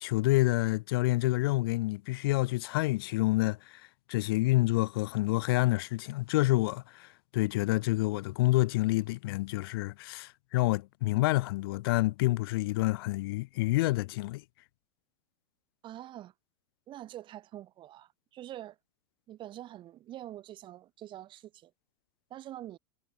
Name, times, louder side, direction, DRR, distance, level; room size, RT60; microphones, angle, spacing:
voice 1, 0.0-3.6 4.1-7.1 7.3-14.4, left 20 dB, 60° left, 0.6 m, -28 dB
voice 2, 15.8-16.3 16.9-18.8 19.3-21.7 22.3-22.8, right 13 dB, 35° right, 2.9 m, -45 dB
hypercardioid pair, 105°, 14 cm